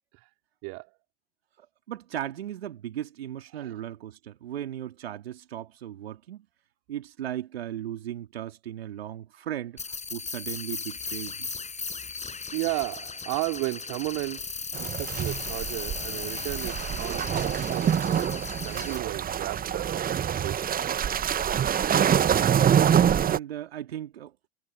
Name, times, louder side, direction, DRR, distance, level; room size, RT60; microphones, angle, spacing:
voice 1, 0.6-0.9 3.5-3.8 12.5-20.8, right 31 dB, 60° right, 4.2 m, -34 dB
voice 2, 1.9-6.4 6.9-9.8 10.1-11.5 22.8-24.3, right 11 dB, 80° right, 3.3 m, -37 dB
sound 1, 9.8-19.0, left 4 dB, 25° left, 7.5 m, -37 dB
sound 2, 14.7-23.4, right 9 dB, 30° right, 1.0 m, -25 dB
figure-of-eight pair, 70°, 30 cm